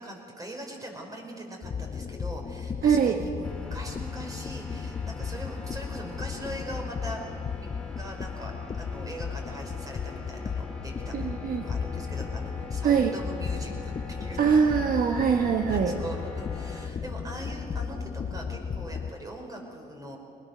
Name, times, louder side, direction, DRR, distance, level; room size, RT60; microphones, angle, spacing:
voice 1, 0.0-7.7 8.0-11.1 11.5-14.6 15.7-20.2, right 1 dB, 20° right, 1 dB, 5.2 m, -41 dB
sound 1, 1.6-19.1, left 6 dB, 30° left, 0.9 m, -35 dB
voice 2, 2.8-3.2 11.1-11.7 12.8-13.1 14.4-15.9, right 7 dB, 55° right, 4 dB, 1.3 m, -23 dB
sound 2, 3.4-16.9, left 2 dB, 5° left, 3.1 m, -45 dB
25.0 x 20.0 x 6.8 m, 2.5 s
cardioid pair, 110°, 17 cm